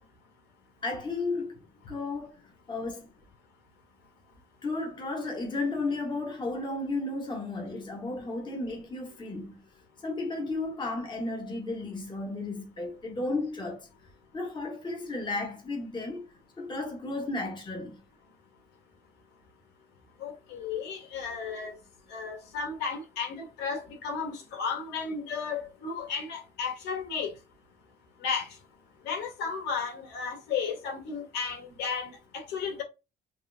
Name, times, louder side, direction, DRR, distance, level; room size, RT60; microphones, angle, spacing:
voice 1, 0.8-1.5 1.9-2.4 2.7-3.1 4.6-9.6 10.0-13.9 14.3-16.2 16.6-18.0, left 2 dB, 25° left, 1.9 m, -33 dB
voice 2, 20.2-21.8 22.1-27.3 28.2-28.5 29.0-32.8, left 5 dB, 85° left, 2.0 m, -34 dB
5.5 x 3.1 x 2.3 m
cardioid pair, 110°, 17 cm